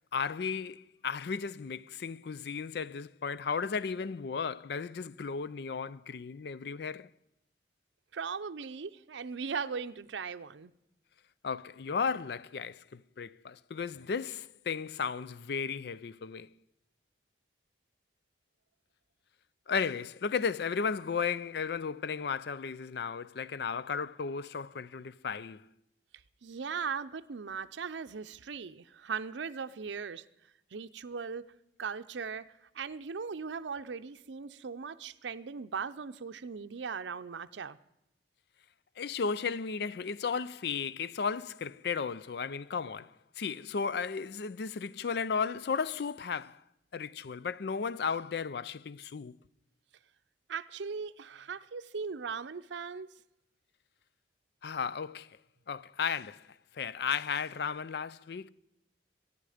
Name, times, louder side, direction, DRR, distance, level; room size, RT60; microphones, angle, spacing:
voice 1, 0.1-7.1 11.4-16.5 19.7-25.6 39.0-46.6 46.9-49.4 54.6-55.3 55.7-56.5 56.7-58.5, left 6 dB, 65° left, 0.4 m, -34 dB
voice 2, 8.1-10.7 26.4-30.2 30.7-31.5 31.8-37.8 50.5-53.1, right 5 dB, 90° right, 0.6 m, -38 dB
23.0 x 11.0 x 5.0 m
head